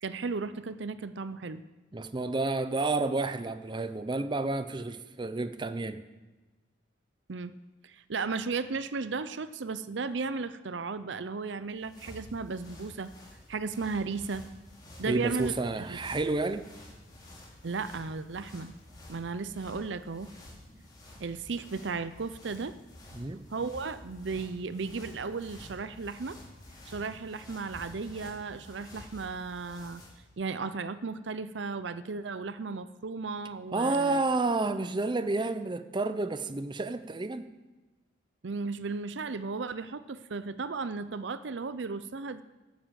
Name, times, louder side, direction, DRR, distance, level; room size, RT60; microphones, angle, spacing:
voice 1, 0.0-1.6 7.3-7.5 7.8-13.1 13.5-14.5 15.0-16.0 17.6-18.7 19.1-20.3 21.2-22.8 23.5-26.4 26.9-30.0 30.4-34.2 38.4-42.4, right 4 dB, 70° right, 14 dB, 0.6 m, -35 dB
voice 2, 1.9-6.0 15.0-16.7 23.1-23.4 33.7-37.5, right 3 dB, 25° right, 11 dB, 0.6 m, -30 dB
sound 1, 11.5-30.3, left 1 dB, 20° left, 4.5 m, -50 dB
12.5 x 10.5 x 7.5 m, 1.2 s
head